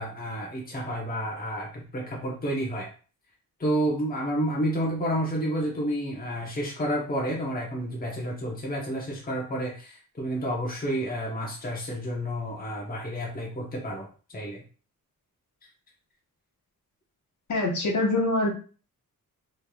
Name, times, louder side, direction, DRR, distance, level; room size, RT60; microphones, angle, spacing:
voice 1, 0.0-2.9 3.6-14.1 14.3-14.6, equal, 25° left, -2 dB, 1.0 m, -30 dB
voice 2, 17.5-18.5, left 2 dB, 55° left, -1 dB, 1.2 m, -24 dB
4.3 x 3.2 x 2.3 m, 0.37 s
wide cardioid pair, 130°, 36 cm